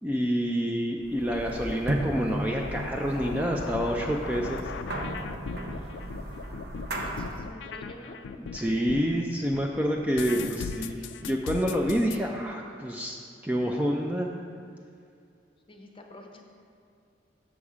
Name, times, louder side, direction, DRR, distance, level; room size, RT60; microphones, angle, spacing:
voice 1, 0.0-4.7 8.3-14.3, equal, 10° right, 0 dB, 0.3 m, -28 dB
sound 1, 1.0-7.5, right 1 dB, 60° right, 0.7 m, -35 dB
sound 2, 1.2-9.2 9.5-12.2, left 5 dB, 90° left, 0.3 m, -38 dB
voice 2, 5.7-6.1 7.0-8.2 15.7-16.4, left 1 dB, 30° left, 2 dB, 0.7 m, -48 dB
6.9 x 6.2 x 4.8 m, 2.4 s
head